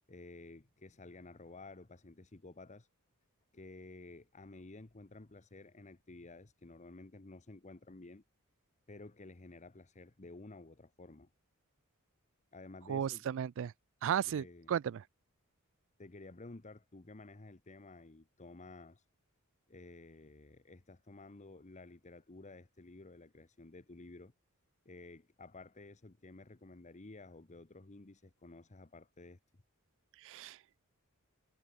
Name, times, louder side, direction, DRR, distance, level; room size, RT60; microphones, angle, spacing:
voice 1, 0.1-2.9 3.5-8.2 8.9-11.3 12.5-13.2 14.2-14.7 16.0-19.1 19.7-24.3 24.8-29.4, left 2 dB, 35° left, 1.0 m, -53 dB
voice 2, 12.9-13.7 14.0-15.0 30.2-30.6, right 8 dB, 60° right, 0.3 m, -34 dB
head